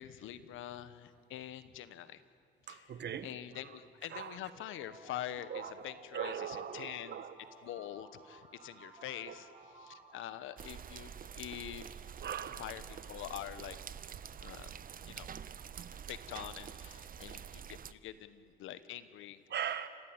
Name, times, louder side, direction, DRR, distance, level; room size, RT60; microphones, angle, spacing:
voice 1, 0.0-2.2 2.7-2.9 3.2-7.2 7.6-9.5 9.8-11.8 12.6-13.8 14.4-14.7 15.1-15.3 16.1-19.4, left 12 dB, 90° left, 14 dB, 1.2 m, -45 dB
voice 2, 2.7-3.3 4.1-4.4 5.5-7.3 9.3-9.4 12.2-12.7 15.1-15.3 15.8-15.9 19.5-19.9, right 9 dB, 60° right, 12 dB, 1.5 m, -40 dB
sound 1, 4.5-11.3, right 2 dB, 30° right, 4.3 m, -57 dB
sound 2, 10.6-17.9, right 8 dB, 45° right, 0.8 m, -47 dB
29.0 x 16.0 x 8.9 m, 2.1 s
cardioid pair, 90°, 20 cm